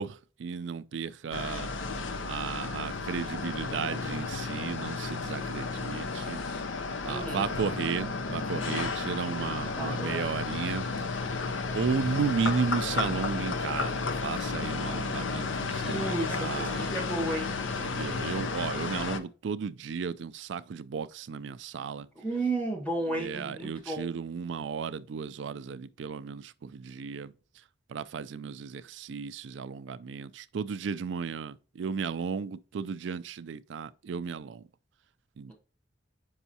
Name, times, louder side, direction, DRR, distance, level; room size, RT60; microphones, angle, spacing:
voice 1, 0.0-1.7 2.3-6.4 7.0-11.1 11.7-16.9 17.8-22.1 23.1-27.3 27.9-34.6 35.4-35.5, right 6 dB, 70° right, 0.4 m, -34 dB
sound 1, 1.3-19.2, left 4 dB, 80° left, 0.6 m, -33 dB
voice 2, 7.1-7.5 9.8-10.2 15.9-17.6 22.1-24.1, right 2 dB, 10° left, 1.5 m, -33 dB
7.0 x 5.5 x 2.8 m
head